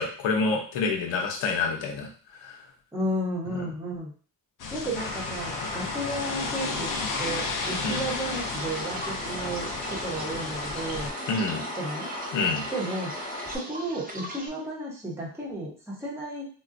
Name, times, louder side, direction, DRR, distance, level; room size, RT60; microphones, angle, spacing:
voice 1, 0.0-2.1 2.4-2.6 3.5-3.6 7.8-8.0 11.3-11.6 12.3-12.7, left 4 dB, 80° left, 2 dB, 0.8 m, -27 dB
voice 2, 2.9-4.1 4.7-6.9 7.2-11.1 11.7-12.1 12.7-13.1 13.5-16.5, right 1 dB, 5° right, -4 dB, 0.8 m, -33 dB
sound 1, 4.6-11.1, left 4 dB, 50° left, 0.4 m, -34 dB
sound 2, 4.9-13.6, left 1 dB, 15° left, 1.0 m, -36 dB
sound 3, 6.5-14.5, right 1 dB, 20° right, 0.4 m, -41 dB
3.7 x 2.1 x 2.5 m, 0.41 s
wide cardioid pair, 150°, 45 cm